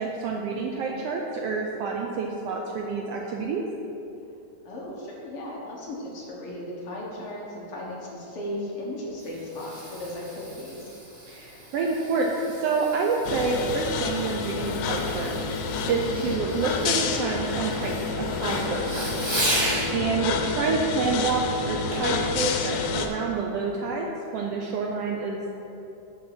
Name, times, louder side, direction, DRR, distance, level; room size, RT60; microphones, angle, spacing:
voice 1, 0.0-3.6 11.3-15.3 15.9-19.2 19.9-24.1 24.3-25.5, right 4 dB, 75° right, 0 dB, 1.5 m, -28 dB
voice 2, 4.6-11.0, left 1 dB, 55° left, -4 dB, 2.0 m, -36 dB
Fireworks, 8.9-19.9 21.9-22.2 22.8-22.9, right 1 dB, 30° right, 2.3 m, -35 dB
sound 1, 13.3-23.1, left 5 dB, 90° left, 2.1 m, -29 dB
8.3 x 6.4 x 6.0 m, 2.9 s
omnidirectional pair, 3.3 m